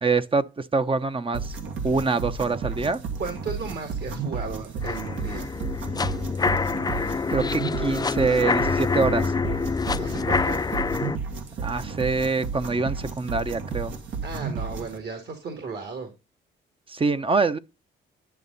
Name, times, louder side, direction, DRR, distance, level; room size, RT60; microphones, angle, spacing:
voice 1, 0.0-1.6 1.8-3.0 7.3-9.3 11.6-13.9 16.9-17.6, right 4 dB, 25° right, 0.8 m, -25 dB
sound 1, 1.3-15.0, right 5 dB, 75° right, 1.9 m, -33 dB
voice 2, 3.2-5.5 10.0-10.6 14.2-16.1, right 4 dB, 55° right, 2.4 m, -35 dB
sound 2, 4.8-11.2, left 4 dB, 20° left, 0.5 m, -26 dB
10.5 x 6.6 x 4.1 m
cardioid pair, 90°, 20 cm